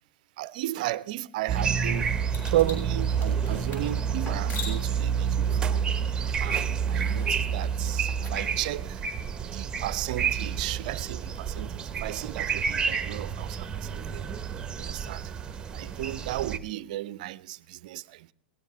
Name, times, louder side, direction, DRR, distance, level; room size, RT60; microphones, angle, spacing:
voice 1, 0.4-5.8 6.4-9.0 9.4-14.3 14.8-15.3 15.7-18.3, right 15 dB, 45° right, 0.6 m, -34 dB
sound 1, 1.5-16.6, right 7 dB, 15° right, 1.0 m, -29 dB
sound 2, 2.3-8.4, left 2 dB, 25° left, 6.7 m, -44 dB
22.5 x 18.0 x 3.4 m
figure-of-eight pair, 100°, 6 cm